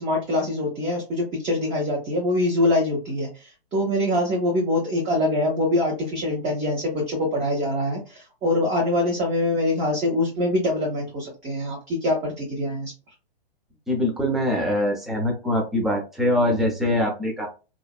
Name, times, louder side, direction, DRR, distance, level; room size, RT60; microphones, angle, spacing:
voice 1, 0.0-12.9, left 1 dB, 20° right, -1 dB, 0.8 m, -24 dB
voice 2, 13.9-17.5, left 1 dB, ahead, -1 dB, 0.4 m, -23 dB
2.6 x 2.1 x 2.2 m, 0.31 s
hypercardioid pair, 125°, 31 cm